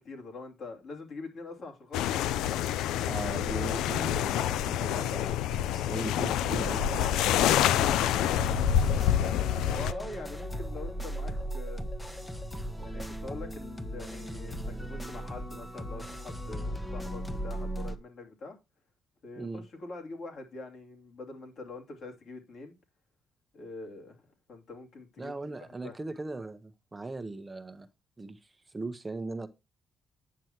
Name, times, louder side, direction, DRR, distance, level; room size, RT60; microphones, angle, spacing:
voice 1, 0.0-2.6 9.7-11.8 12.8-18.6 19.2-22.7 23.5-25.3 25.6-26.0, left 3 dB, 60° left, 2.8 m, -44 dB
sound 1, 1.9-9.9, left 11 dB, 90° left, 0.3 m, -27 dB
voice 2, 2.9-6.9 19.4-19.6 25.2-27.9 28.2-29.5, right 3 dB, 20° right, 0.8 m, -39 dB
sound 2, 6.2-18.0, equal, 15° left, 0.9 m, -37 dB
9.2 x 6.1 x 2.9 m
cardioid pair, 90°, 0 cm